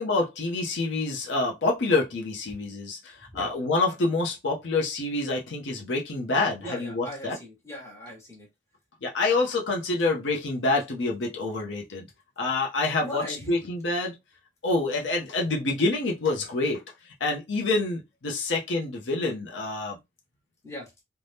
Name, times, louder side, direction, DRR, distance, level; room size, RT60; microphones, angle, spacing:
voice 1, 0.0-7.4 9.0-12.1 12.4-14.1 14.6-20.0, left 3 dB, 70° left, 0.6 m, -27 dB
voice 2, 6.6-8.5 13.0-13.6 20.6-20.9, equal, 15° left, 1.1 m, -39 dB
2.7 x 2.1 x 3.4 m
head